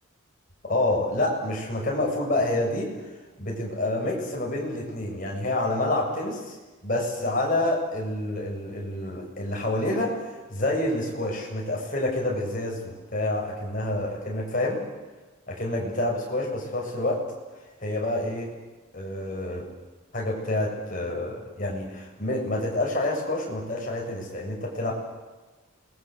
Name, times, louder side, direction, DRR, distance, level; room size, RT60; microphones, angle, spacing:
voice 1, 0.6-2.9 3.4-6.6 6.8-10.2 10.5-14.8 15.5-17.3 17.8-18.5 18.9-19.7 20.1-24.9, left 1 dB, 40° left, -1 dB, 7.4 m, -28 dB
28.0 x 22.0 x 8.1 m, 1.2 s
head